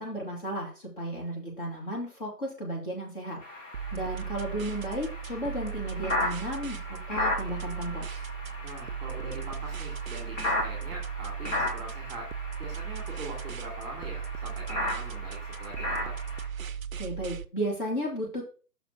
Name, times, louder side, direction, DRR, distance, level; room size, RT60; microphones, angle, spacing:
voice 1, 0.0-3.4 3.9-8.2 17.0-18.4, right 1 dB, 35° left, -2 dB, 1.8 m, -34 dB
sound 1, 3.4-16.5, left 1 dB, 50° left, 2.9 m, -36 dB
sound 2, 3.7-17.4, right 8 dB, 60° right, 0.5 m, -37 dB
voice 2, 8.6-12.3 12.6-16.1, right 2 dB, 10° right, -1 dB, 2.2 m, -42 dB
6.1 x 4.1 x 5.6 m, 0.37 s
figure-of-eight pair, 145°, 47 cm